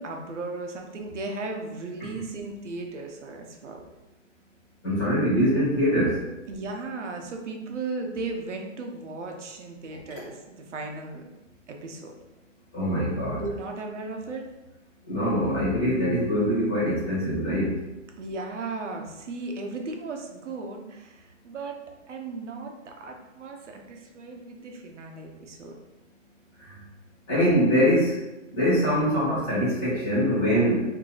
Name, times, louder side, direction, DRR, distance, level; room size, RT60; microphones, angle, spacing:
voice 1, 0.0-3.8 6.5-11.2 11.7-12.1 13.4-14.4 18.2-25.8, right 3 dB, 65° right, 2 dB, 0.7 m, -36 dB
voice 2, 4.8-6.2 12.7-13.4 15.1-17.7 27.3-28.1 28.6-30.8, equal, 10° left, -9 dB, 0.5 m, -23 dB
2.7 x 2.4 x 3.9 m, 1.0 s
hypercardioid pair, 165°, 38 cm